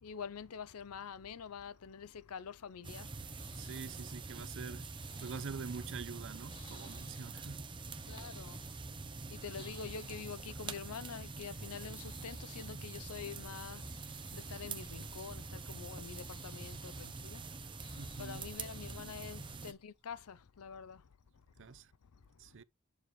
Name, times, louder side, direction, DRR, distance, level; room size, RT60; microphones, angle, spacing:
voice 1, 0.0-3.3 8.1-8.7 9.2-21.2 21.6-22.6, left 6 dB, 80° left, 0.6 m, -47 dB
sound 1, 2.8-19.7, right 3 dB, 20° right, 0.8 m, -45 dB
sound 2, 3.0-20.2, left 2 dB, 25° left, 2.1 m, -61 dB
voice 2, 3.6-4.9 5.2-7.6 18.0-18.4 21.6-21.9 22.4-22.6, right 5 dB, 60° right, 0.6 m, -45 dB
7.1 x 6.8 x 3.2 m
head